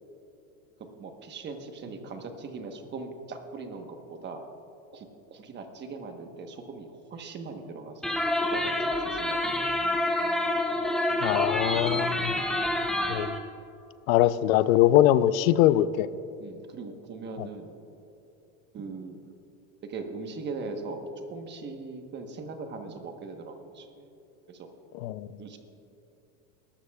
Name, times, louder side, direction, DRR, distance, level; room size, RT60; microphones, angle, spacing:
voice 1, 1.0-4.4 4.9-8.2 8.5-9.7 14.2-14.6 16.4-17.8 18.7-19.2 19.8-24.1 24.5-24.7 25.4-25.6, right 4 dB, 25° right, 5 dB, 1.1 m, -40 dB
sound 1, 8.0-13.4, left 1 dB, ahead, 0.6 m, -27 dB
voice 2, 11.2-12.3 13.1-13.3 14.1-16.1 17.4-17.5 25.0-25.3, left 13 dB, 80° left, 16 dB, 0.6 m, -22 dB
20.0 x 13.0 x 2.3 m, 2.9 s
supercardioid pair, 145°, 40 cm